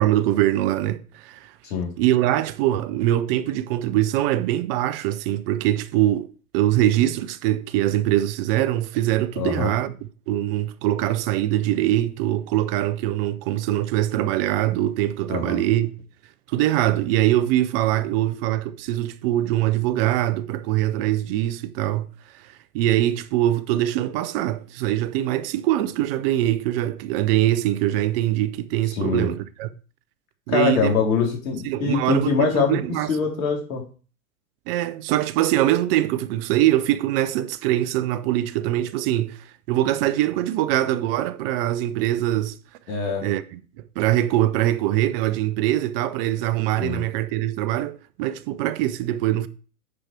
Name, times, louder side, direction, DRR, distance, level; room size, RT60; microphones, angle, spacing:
voice 1, 0.0-1.5 2.0-9.9 10.3-15.9 16.5-22.1 22.7-29.7 30.5-31.0 31.6-33.1 34.7-42.6 43.2-43.6 44.0-49.5, right 14 dB, 40° right, 0.7 m, -23 dB
voice 2, 9.4-9.7 15.3-15.6 28.9-29.3 30.5-33.8 42.9-43.3 46.8-47.0, left 5 dB, 65° left, 3.3 m, -24 dB
9.7 x 4.8 x 4.4 m
hypercardioid pair, 110°, 45 cm